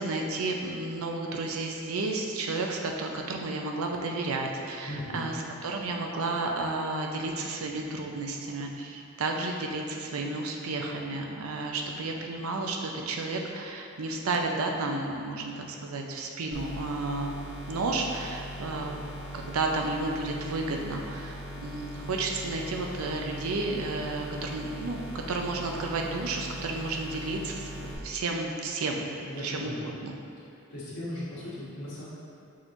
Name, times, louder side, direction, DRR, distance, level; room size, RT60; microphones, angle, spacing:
voice 1, 0.0-17.4 17.7-19.0 19.3-21.4 21.6-25.0 25.3-30.1, right 3 dB, 80° right, 1 dB, 0.5 m, -32 dB
voice 2, 4.9-5.4 29.3-29.9 30.4-32.0, left 1 dB, 85° left, -11 dB, 1.3 m, -38 dB
sound 1, 16.5-27.9, equal, 60° left, 1.1 m, -40 dB
6.1 x 3.0 x 2.6 m, 2.8 s
head